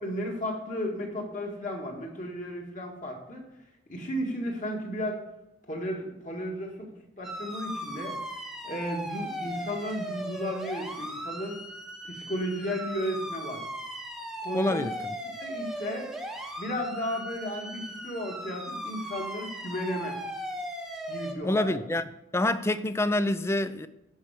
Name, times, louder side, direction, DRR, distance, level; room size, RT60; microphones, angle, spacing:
voice 1, 0.0-3.4 3.9-5.2 5.7-6.9 7.2-8.2 8.6-11.6 12.0-13.6 14.4-14.9 15.4-16.1 16.6-20.2 21.1-21.8, equal, 40° left, 1.9 m, -34 dB
sound 1, 7.2-21.3, right 1 dB, ahead, 0.8 m, -38 dB
voice 2, 14.5-15.2 21.4-22.0 22.3-23.9, left 1 dB, 15° left, 0.3 m, -27 dB
14.5 x 5.5 x 4.9 m
head